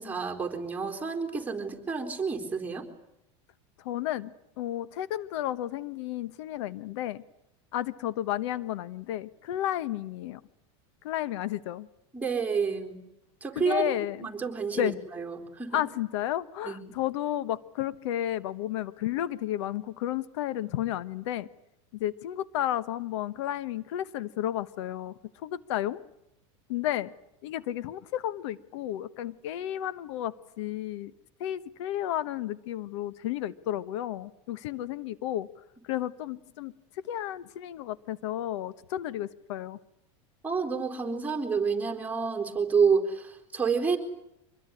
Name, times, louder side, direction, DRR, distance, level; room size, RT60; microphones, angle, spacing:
voice 1, 0.0-2.8 12.1-13.0 13.4-13.8 14.2-15.8 16.6-17.0 40.4-44.0, right 5 dB, 10° right, 2 dB, 3.9 m, -29 dB
voice 2, 3.8-7.2 7.7-10.4 11.0-11.9 13.5-14.3 14.7-15.0 15.7-21.5 21.9-25.1 25.4-26.0 26.7-27.1 27.4-31.1 31.4-35.5 35.8-36.7 37.0-39.8, left 12 dB, 70° left, 17 dB, 1.1 m, -32 dB
25.0 x 21.0 x 9.9 m, 0.81 s
supercardioid pair, 140°, 15 cm